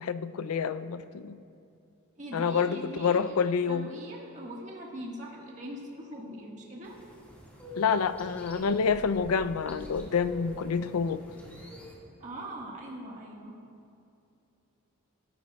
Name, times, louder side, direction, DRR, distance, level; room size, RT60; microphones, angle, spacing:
voice 1, 0.0-1.4 2.3-3.9 7.8-11.2, left 6 dB, 80° left, 13 dB, 0.4 m, -28 dB
voice 2, 2.2-3.4 3.7-7.0 12.2-13.6, right 1 dB, 35° right, -3 dB, 1.6 m, -41 dB
sound 1, 6.8-11.9, left 1 dB, 10° left, 1.8 m, -45 dB
17.5 x 13.0 x 2.3 m, 2.6 s
head